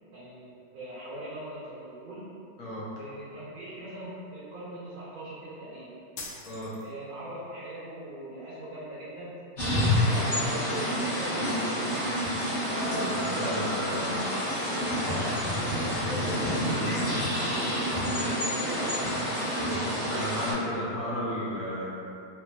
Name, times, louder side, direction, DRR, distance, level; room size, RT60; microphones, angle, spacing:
voice 1, 0.1-2.4 3.0-6.0 6.8-9.5 9.8-11.9 12.7-14.3 15.0-19.3, right 1 dB, 80° right, -10 dB, 1.5 m, -41 dB
voice 2, 2.6-2.9 6.5-6.8 12.7-14.1 15.1-15.4 20.0-22.0, equal, 65° left, -7 dB, 0.9 m, -33 dB
sound 1, 6.2-7.2, left 3 dB, 80° left, 1.4 m, -42 dB
sound 2, 9.6-20.5, equal, 35° left, 1.0 m, -28 dB
3.8 x 2.9 x 2.3 m, 2.6 s
omnidirectional pair, 2.2 m